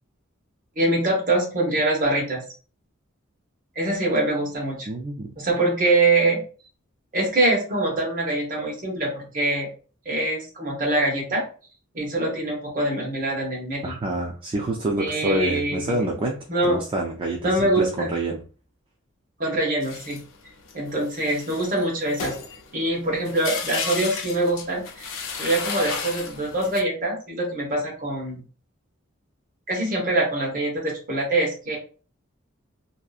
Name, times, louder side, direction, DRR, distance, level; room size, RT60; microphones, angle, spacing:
voice 1, 0.8-2.4 3.8-4.9 5.4-6.4 7.1-9.7 10.0-11.4 11.9-13.9 15.0-16.1 16.5-16.8 17.4-18.1 19.4-20.2 20.7-22.4 22.7-25.1 25.4-28.4 29.7-31.8, right 2 dB, 40° right, -1 dB, 1.0 m, -24 dB
voice 2, 4.9-5.3 13.8-16.4 16.6-18.4, right 1 dB, 25° right, -1 dB, 0.3 m, -27 dB
sound 1, 19.8-26.8, left 5 dB, 65° left, 0.5 m, -33 dB
2.7 x 2.5 x 2.3 m, 0.37 s
head